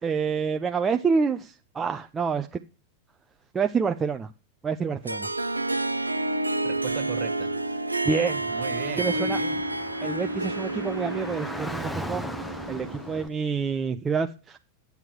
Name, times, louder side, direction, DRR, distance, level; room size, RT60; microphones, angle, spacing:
voice 1, 0.0-2.6 3.5-4.3 4.6-5.3 8.1-8.5 9.0-9.4 10.0-12.3 12.7-14.6, right 5 dB, 20° right, 0.6 m, -27 dB
Harp, 5.0-13.5, right 2 dB, 85° right, 0.6 m, -30 dB
voice 2, 6.6-7.8 8.5-9.7, right 8 dB, 40° right, 1.8 m, -37 dB
Car / Traffic noise roadway noise, 8.2-13.3, equal, 5° left, 0.9 m, -39 dB
10.5 x 8.2 x 4.6 m
figure-of-eight pair, 90°, 0 cm